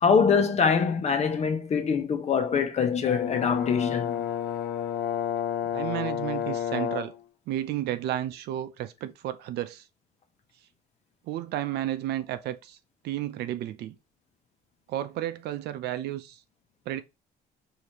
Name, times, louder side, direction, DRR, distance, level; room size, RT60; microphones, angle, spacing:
voice 1, 0.0-4.2, left 6 dB, 40° left, 1.0 m, -24 dB
Brass instrument, 3.0-7.2, left 9 dB, 65° left, 0.6 m, -30 dB
voice 2, 5.7-7.2 7.5-9.8 11.3-12.8 13.0-14.0 14.9-16.4 16.9-17.0, right 13 dB, 75° right, 0.6 m, -32 dB
4.9 x 2.8 x 2.9 m
cardioid pair, 110°, 17 cm